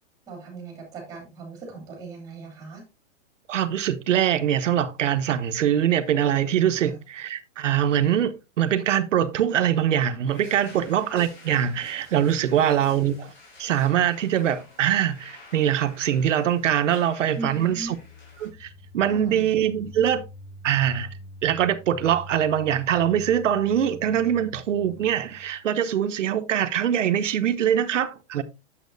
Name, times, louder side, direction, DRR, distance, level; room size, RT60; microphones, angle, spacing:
voice 1, 0.3-2.8 6.8-7.0 10.7-10.8 12.5-12.6 17.3-17.9 19.0-19.4, right 3 dB, 10° right, 3.0 m, -38 dB
voice 2, 3.5-13.3 13.6-17.9 18.4-18.7 18.9-20.2 20.6-21.1 21.4-28.4, right 10 dB, 85° right, 1.1 m, -23 dB
sound 1, 10.3-18.5, left 2 dB, 35° left, 4.6 m, -50 dB
sound 2, 17.8-25.6, equal, 5° left, 0.9 m, -45 dB
8.4 x 7.7 x 2.6 m
hypercardioid pair, 170°, 36 cm